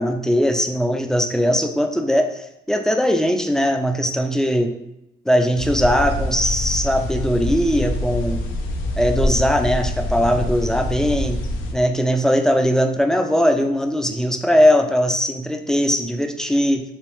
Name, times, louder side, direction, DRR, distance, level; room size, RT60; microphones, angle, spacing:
voice 1, 0.0-4.7 5.3-8.4 9.0-11.4 11.7-16.8, equal, 5° left, 6 dB, 0.3 m, -20 dB
sound 1, 5.6-11.7, left 1 dB, 90° left, 0.5 m, -25 dB
3.1 x 3.1 x 3.0 m, 0.85 s
cardioid pair, 90°, 20 cm